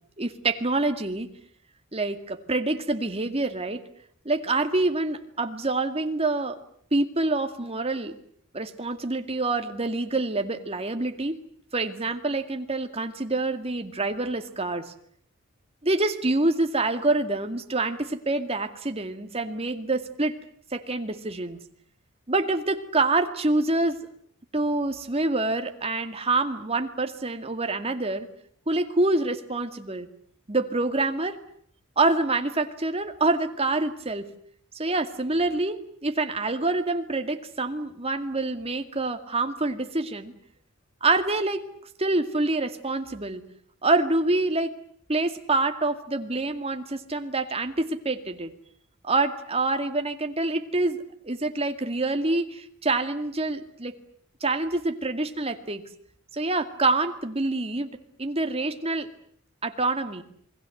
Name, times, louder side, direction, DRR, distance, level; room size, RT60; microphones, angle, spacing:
voice 1, 0.2-1.3 1.9-3.8 4.3-6.6 6.9-8.1 8.5-11.4 11.7-14.9 15.8-20.3 20.7-21.6 22.3-24.0 24.5-28.3 28.7-30.1 30.5-31.4 32.0-34.3 34.7-40.3 41.0-41.6 42.0-43.4 43.8-44.8 45.1-48.5 49.0-54.0 54.4-55.8 56.3-57.9 58.2-59.1 59.6-60.2, right 2 dB, 30° right, 7 dB, 2.2 m, -26 dB
29.0 x 21.5 x 7.9 m, 0.63 s
head